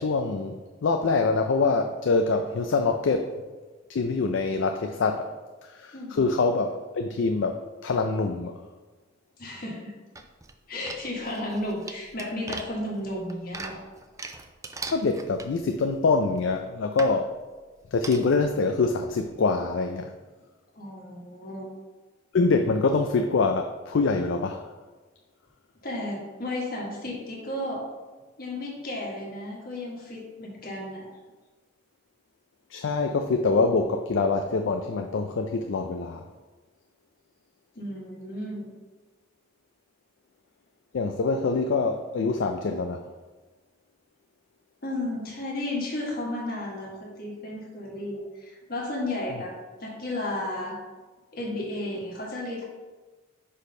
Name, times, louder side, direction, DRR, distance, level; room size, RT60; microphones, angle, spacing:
voice 1, 0.0-3.3 3.9-5.2 5.6-8.5 14.9-17.3 17.9-20.1 22.3-24.7 32.7-36.2 40.9-43.0, left 4 dB, 70° left, 5 dB, 0.4 m, -25 dB
voice 2, 5.9-6.2 9.4-9.9 10.7-13.8 20.7-21.7 25.8-27.9 28.4-31.1 37.7-38.7 44.8-49.5 49.8-50.8 51.3-52.6, left 1 dB, 50° left, -2 dB, 1.5 m, -33 dB
sound 1, 10.1-10.5 10.9-15.9 16.4-16.5 17.0-17.2 18.0-18.4 18.9-19.0 19.2-19.3, right 3 dB, 15° right, 0.3 m, -40 dB
4.9 x 4.2 x 5.3 m, 1.3 s
head